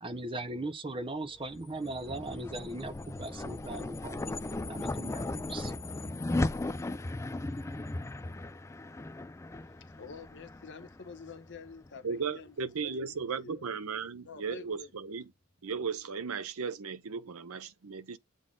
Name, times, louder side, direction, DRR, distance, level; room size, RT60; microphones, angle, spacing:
voice 1, 0.0-5.7, right 2 dB, 25° right, 0.7 m, -39 dB
sound 1, 1.4-11.9, left 2 dB, 15° left, 0.3 m, -37 dB
voice 2, 9.6-13.7 14.2-15.2, left 5 dB, 55° left, 0.9 m, -49 dB
voice 3, 12.0-15.3 15.6-18.2, right 5 dB, 65° right, 0.7 m, -36 dB
7.7 x 3.9 x 3.7 m
head